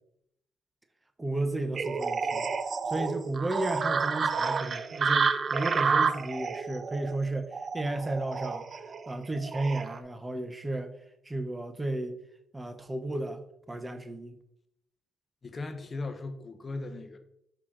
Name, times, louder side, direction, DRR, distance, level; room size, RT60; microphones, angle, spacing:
voice 1, 1.2-2.5 2.9-8.7 9.1-11.0 11.2-12.2 12.5-14.4, right 2 dB, 15° right, 0.8 m, -33 dB
sound 1, 1.8-10.0, right 5 dB, 45° right, 0.5 m, -30 dB
voice 2, 15.4-17.2, left 3 dB, 35° left, 0.9 m, -37 dB
5.7 x 4.7 x 3.7 m
cardioid pair, 90°, 0 cm